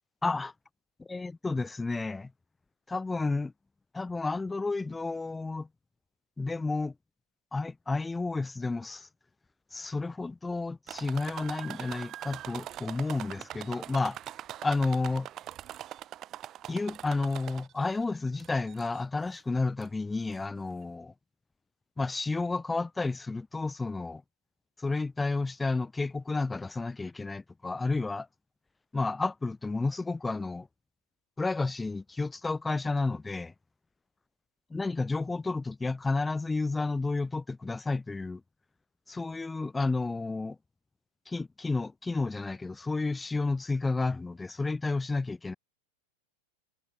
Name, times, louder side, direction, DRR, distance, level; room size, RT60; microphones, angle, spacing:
voice 1, 0.2-0.5 1.1-2.3 2.9-3.5 3.9-5.7 6.4-6.9 7.5-9.1 9.7-14.2 14.6-15.3 16.7-21.1 22.0-24.2 24.8-28.3 28.9-30.7 31.4-33.5 34.7-38.4 39.1-40.6 41.3-45.5, left 3 dB, 10° left, 0.5 m, -31 dB
sound 1, 10.9-17.9 18.4-19.0 19.8-19.9 20.3-20.4, right 12 dB, 30° right, 0.6 m, -42 dB
figure-of-eight pair, 90°, 0 cm